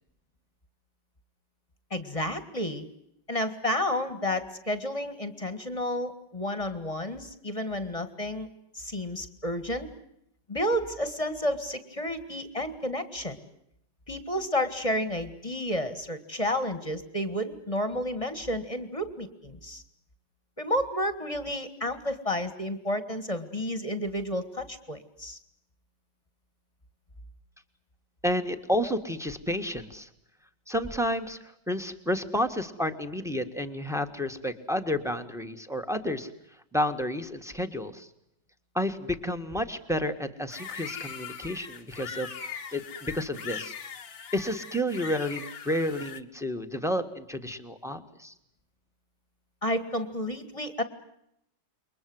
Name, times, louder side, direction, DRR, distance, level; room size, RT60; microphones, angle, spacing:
voice 1, 1.9-2.9 3.3-8.5 8.7-9.9 10.5-13.4 14.1-19.8 20.6-25.4 49.6-50.8, left 1 dB, 15° left, 10 dB, 1.7 m, -31 dB
voice 2, 28.2-30.1 30.7-36.3 36.7-38.1 38.7-43.7 44.3-48.3, equal, ahead, 7 dB, 1.6 m, -31 dB
sound 1, 40.5-46.2, left 6 dB, 50° left, 1.6 m, -40 dB
29.0 x 23.0 x 7.9 m, 0.78 s
omnidirectional pair, 2.2 m